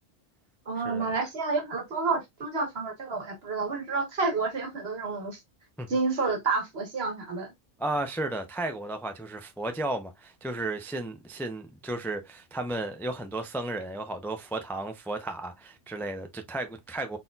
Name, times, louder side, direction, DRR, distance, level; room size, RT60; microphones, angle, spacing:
voice 1, 0.7-5.4 5.9-7.5, right 4 dB, 65° right, 1.6 m, -29 dB
voice 2, 7.8-17.2, right 2 dB, 5° left, 0.3 m, -34 dB
4.0 x 4.0 x 2.3 m
omnidirectional pair, 1.1 m